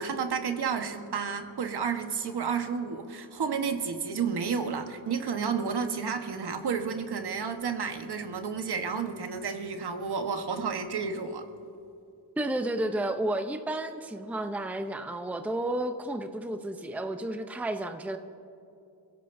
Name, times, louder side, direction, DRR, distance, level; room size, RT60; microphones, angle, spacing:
voice 1, 0.0-11.5, right 6 dB, 60° right, 6 dB, 1.4 m, -31 dB
voice 2, 12.4-18.2, right 1 dB, 5° right, 7 dB, 0.7 m, -32 dB
28.5 x 16.5 x 2.7 m, 2.6 s
cardioid pair, 100°, 44 cm